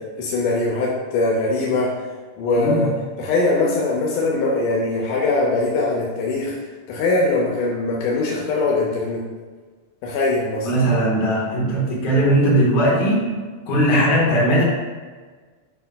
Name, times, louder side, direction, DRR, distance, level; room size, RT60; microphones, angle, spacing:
voice 1, 0.2-1.9 2.4-2.9 3.2-6.6 6.9-9.2 10.0-10.7, left 2 dB, 90° left, -2 dB, 2.3 m, -21 dB
voice 2, 2.5-2.9 10.6-13.4 13.7-14.6, right 1 dB, 70° left, -4 dB, 2.8 m, -18 dB
8.1 x 5.2 x 2.3 m, 1.4 s
omnidirectional pair, 3.5 m